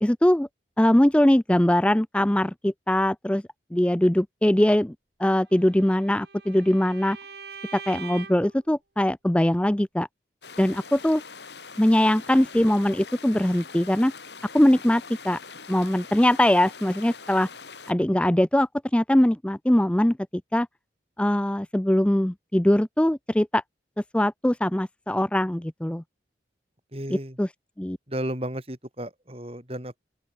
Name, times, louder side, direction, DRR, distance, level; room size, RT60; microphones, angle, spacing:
voice 1, 0.0-0.5 0.8-3.4 3.7-4.9 5.2-7.2 7.7-10.1 10.6-11.2 11.8-14.1 14.5-15.4 15.7-17.5 17.9-20.2 20.5-20.7 21.2-23.6 24.1-26.0 27.1-27.5 27.8-28.0, left 1 dB, 5° left, 0.4 m, -21 dB
Bowed string instrument, 5.5-8.6, right 5 dB, 65° right, 4.7 m, -43 dB
sound 1, 10.4-17.9, left 5 dB, 75° left, 7.6 m, -43 dB
voice 2, 26.9-27.4 28.1-30.0, right 1 dB, 35° right, 6.4 m, -33 dB
open air
head